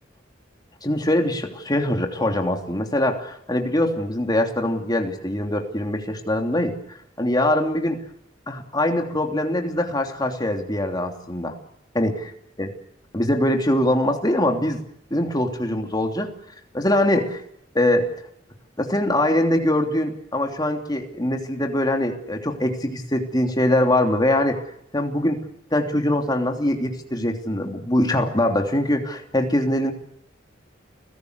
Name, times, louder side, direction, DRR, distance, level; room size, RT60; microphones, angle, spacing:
voice 1, 0.8-6.7 7.2-8.0 8.5-11.5 11.9-12.3 12.6-12.7 13.1-14.8 15.1-16.3 16.7-17.4 17.7-18.1 18.8-24.6 24.9-25.4 25.7-29.9, left 1 dB, 20° left, 3 dB, 3.1 m, -22 dB
29.5 x 17.0 x 8.2 m, 0.72 s
head